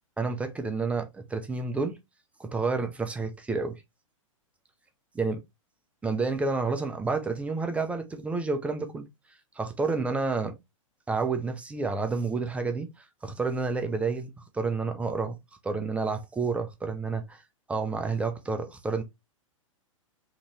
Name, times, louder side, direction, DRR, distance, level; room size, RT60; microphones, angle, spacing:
voice 1, 0.2-2.0 2.4-3.8 5.2-5.4 6.0-9.1 9.6-10.5 11.1-12.9 13.2-15.3 15.6-17.4 17.7-19.0, right 4 dB, 5° right, 0.4 m, -29 dB
2.8 x 2.5 x 3.1 m
figure-of-eight pair, 105°, 17 cm